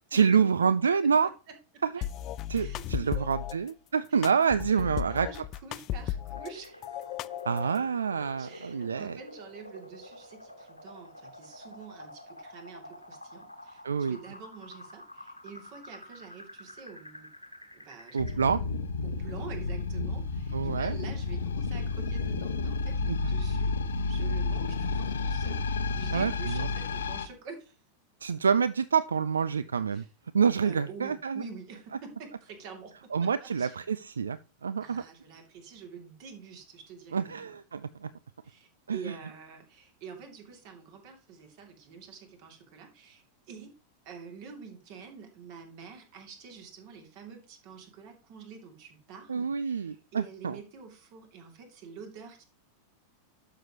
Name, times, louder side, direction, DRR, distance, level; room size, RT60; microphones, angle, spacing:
voice 1, 0.1-1.3 1.8-1.9 2.5-5.3 7.5-9.2 13.8-14.2 18.1-18.6 20.5-20.9 23.1-23.2 26.1-26.7 28.2-30.0 30.3-31.4 33.1-35.0 37.1-38.1 38.9-39.1 49.3-50.6, right 6 dB, 70° right, 16 dB, 0.3 m, -27 dB
sound 1, 2.0-3.5 4.2-6.5 6.8-7.8, left 12 dB, 35° left, 0.4 m, -35 dB
voice 2, 2.4-3.3 4.1-4.3 4.7-6.8 8.4-17.3 17.7-18.8 19.0-23.7 24.1-27.8 29.9-30.1 30.6-33.8 34.8-37.5 38.4-43.7 44.0-52.4, right 5 dB, 45° right, 3 dB, 2.6 m, -47 dB
sound 2, 6.4-18.4, left 1 dB, 90° left, 1.5 m, -49 dB
sound 3, 18.2-27.3, left 4 dB, 65° left, 0.9 m, -31 dB
12.0 x 6.7 x 3.0 m, 0.33 s
figure-of-eight pair, 90°, 0 cm